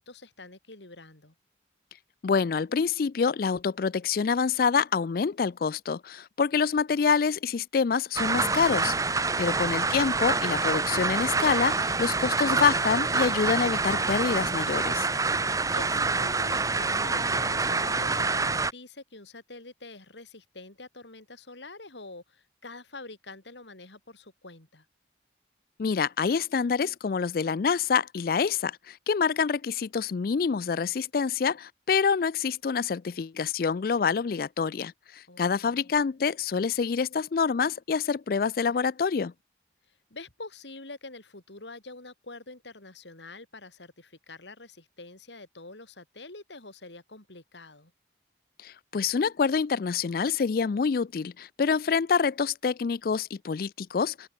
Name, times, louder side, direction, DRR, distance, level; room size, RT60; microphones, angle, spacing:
voice 1, 0.0-1.3 15.4-24.9 35.3-36.0 39.9-47.9, left 3 dB, 80° left, 4.0 m, -46 dB
voice 2, 2.2-9.0 9.4-15.1 25.8-39.3 48.6-54.3, left 5 dB, 55° left, 0.4 m, -26 dB
sound 1, 8.2-18.7, right 4 dB, 20° right, 1.2 m, -26 dB
head